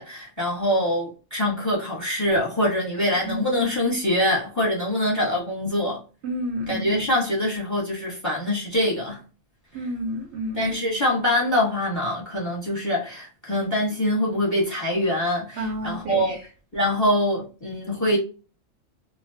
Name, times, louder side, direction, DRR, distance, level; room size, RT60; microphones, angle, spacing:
voice 1, 0.0-6.0 6.7-9.2 10.6-16.4 16.7-18.2, left 1 dB, 15° left, 0.8 m, -24 dB
voice 2, 6.2-7.1 9.7-10.8 15.6-16.4, equal, 60° right, 0.7 m, -30 dB
2.2 x 2.2 x 2.6 m
omnidirectional pair, 1.5 m